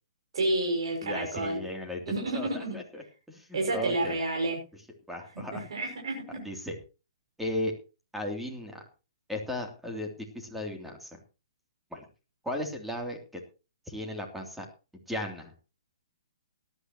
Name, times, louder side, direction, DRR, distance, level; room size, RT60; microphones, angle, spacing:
voice 1, 0.3-1.6 2.1-2.8 3.5-4.6 5.3-6.4, right 2 dB, 70° right, 0 dB, 6.2 m, -30 dB
voice 2, 1.0-2.0 2.3-4.2 5.1-5.7 6.4-6.7 7.4-7.7 8.1-8.8 9.3-11.2 11.9-12.0 12.4-13.2 13.9-14.7 15.1-15.5, left 1 dB, 5° right, 1 dB, 3.1 m, -36 dB
18.0 x 12.0 x 3.0 m, 0.32 s
hypercardioid pair, 140°, 3 cm